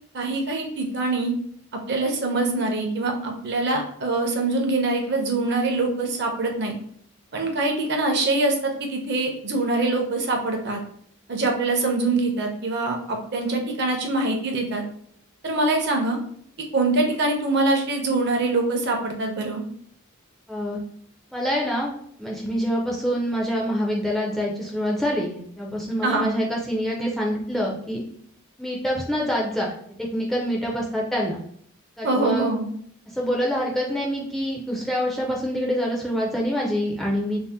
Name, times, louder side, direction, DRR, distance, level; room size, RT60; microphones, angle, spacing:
voice 1, 0.1-1.3 1.9-6.7 7.3-10.8 11.3-14.8 15.4-16.2 16.7-19.6 26.0-26.3 32.0-32.7, right 2 dB, 50° right, 2 dB, 0.6 m, -24 dB
voice 2, 20.5-20.8 21.3-21.9 22.2-28.0 28.6-29.7 30.0-31.4 32.0-32.5 33.1-37.4, equal, ahead, -3 dB, 0.3 m, -26 dB
2.6 x 2.0 x 3.3 m, 0.63 s
head